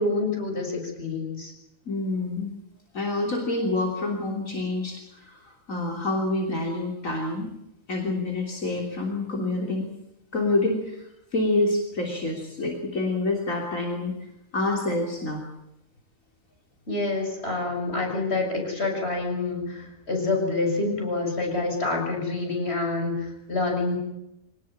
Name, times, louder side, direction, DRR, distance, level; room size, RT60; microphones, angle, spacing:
voice 1, 0.0-1.5 16.9-24.0, left 3 dB, 50° left, 1 dB, 6.8 m, -27 dB
voice 2, 1.9-2.5 2.9-7.5 7.9-9.8 10.3-14.1 14.5-15.4, left 2 dB, 75° left, 1 dB, 3.7 m, -27 dB
25.0 x 19.0 x 8.8 m, 0.86 s
omnidirectional pair, 1.4 m